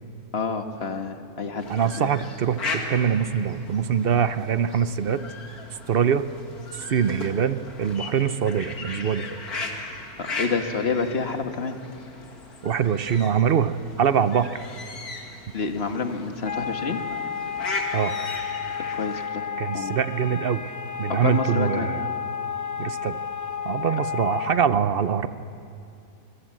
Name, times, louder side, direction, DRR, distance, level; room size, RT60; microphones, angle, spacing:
voice 1, 0.3-2.1 10.2-11.7 15.5-17.0 19.0-19.4 19.7-20.0 21.1-21.9, left 4 dB, 45° left, 6 dB, 1.7 m, -28 dB
sound 1, 1.6-19.3, left 3 dB, 80° left, 2.6 m, -37 dB
voice 2, 1.7-5.2 5.9-6.2 6.7-9.3 12.6-14.6 17.9-18.1 19.6-20.7 21.0-22.0 22.8-23.2 23.6-25.3, right 8 dB, 50° right, 12 dB, 0.8 m, -23 dB
sound 2, 16.5-24.6, left 7 dB, 15° left, 0.9 m, -31 dB
26.5 x 21.5 x 7.6 m, 2.6 s
omnidirectional pair, 1.6 m